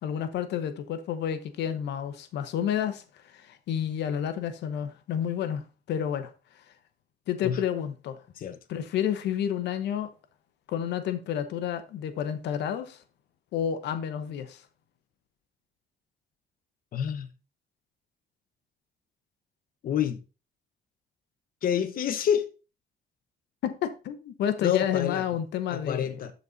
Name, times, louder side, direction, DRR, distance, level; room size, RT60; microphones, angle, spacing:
voice 1, 0.0-6.6 7.3-8.2 8.7-10.1 10.7-13.0 13.5-14.6 23.6-26.2, left 9 dB, 80° left, 1.0 m, -30 dB
voice 2, 16.9-17.3 19.8-20.2 21.6-22.5 24.6-25.2 25.7-26.3, left 9 dB, 55° left, 0.9 m, -27 dB
12.5 x 4.2 x 4.1 m
cardioid pair, 115°, 17 cm